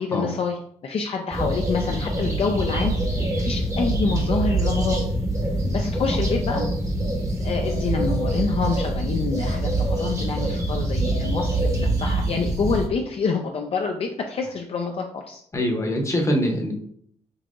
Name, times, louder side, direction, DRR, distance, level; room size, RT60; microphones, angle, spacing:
voice 1, 0.0-2.9 3.4-5.0 5.7-6.6 7.4-15.4, left 4 dB, 50° left, 2 dB, 0.4 m, -27 dB
sound 1, 1.3-12.9, right 1 dB, 25° right, 0.9 m, -24 dB
voice 2, 15.5-16.7, equal, 20° left, 1 dB, 0.8 m, -23 dB
5.3 x 2.8 x 2.5 m, 0.66 s
cardioid pair, 110°, 13 cm